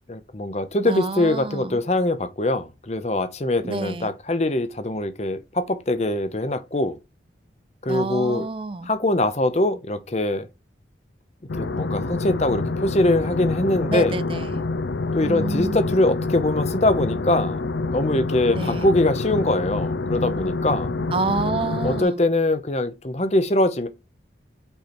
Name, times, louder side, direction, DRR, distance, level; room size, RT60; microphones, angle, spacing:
voice 1, 0.1-7.0 7.8-8.5 8.8-10.5 11.6-14.2 15.1-17.6 17.9-20.9 21.8-23.9, left 1 dB, 35° left, 0.8 m, -23 dB
voice 2, 0.9-1.8 3.6-4.1 7.9-8.9 13.9-14.6 15.2-15.8 18.6-18.9 21.1-22.2, right 3 dB, 30° right, 0.4 m, -28 dB
sound 1, 11.5-22.0, left 3 dB, 70° left, 0.6 m, -27 dB
5.6 x 4.5 x 4.3 m
head